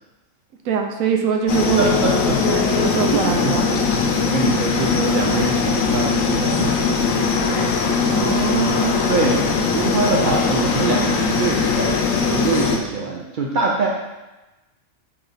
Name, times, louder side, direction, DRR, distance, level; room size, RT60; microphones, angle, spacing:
voice 1, 0.6-4.1 8.1-9.4, right 6 dB, 85° right, 3 dB, 1.0 m, -24 dB
sound 1, 1.5-12.8, left 5 dB, 80° left, 1.0 m, -20 dB
voice 2, 1.8-2.4 3.1-3.6 4.2-6.8 9.1-13.9, right 4 dB, 70° right, -2 dB, 0.4 m, -23 dB
4.0 x 3.3 x 4.0 m, 1.1 s
omnidirectional pair, 1.4 m